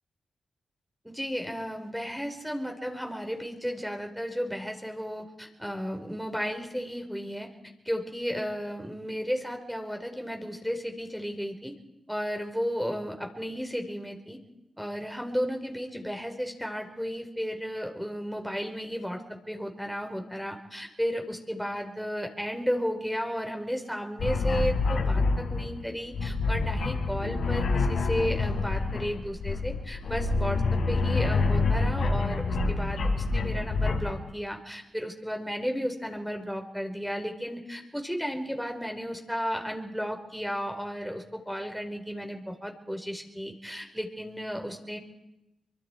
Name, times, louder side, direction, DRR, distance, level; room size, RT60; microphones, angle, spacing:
voice 1, 1.0-7.5 7.8-11.7 12.1-14.4 14.8-19.2 19.5-45.0, equal, ahead, 4 dB, 4.3 m, -33 dB
sound 1, 24.2-34.3, left 3 dB, 85° left, 4.1 m, -27 dB
27.5 x 24.0 x 4.5 m, 0.92 s
cardioid pair, 65°, 0 cm